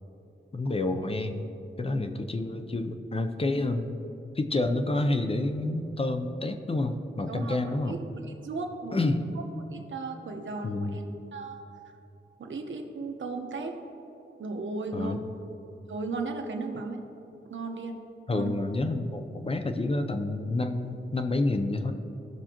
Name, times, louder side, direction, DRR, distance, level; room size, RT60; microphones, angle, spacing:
voice 1, 0.5-1.4 1.8-4.0 4.4-8.0 8.9-9.2 10.6-11.0 14.9-15.4 18.3-21.9, left 2 dB, 30° left, 7 dB, 0.5 m, -29 dB
voice 2, 7.3-7.6 7.9-8.0 8.4-9.1 9.7-11.0 11.3-11.6 12.4-13.8 14.4-15.2 15.9-17.0 17.5-18.0 18.3-18.5, right 3 dB, 70° right, 3 dB, 0.9 m, -35 dB
16.0 x 6.1 x 2.9 m, 2.9 s
wide cardioid pair, 125°, 20 cm